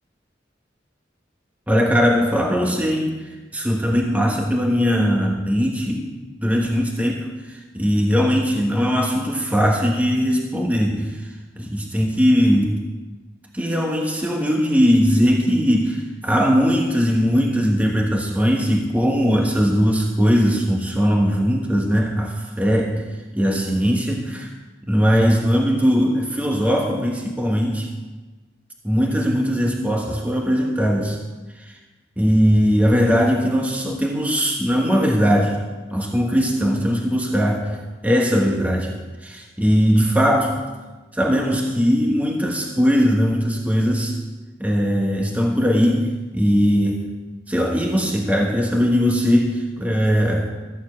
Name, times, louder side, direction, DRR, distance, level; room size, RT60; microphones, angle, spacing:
voice 1, 1.7-11.3 11.5-12.8 13.5-23.1 23.3-24.5 24.9-27.9 28.8-31.2 31.6-31.8 32.2-35.6 35.9-40.7 41.1-44.1 44.6-47.0 47.5-50.5, equal, 10° right, 0 dB, 1.2 m, -20 dB
14.0 x 7.1 x 8.4 m, 1.2 s
head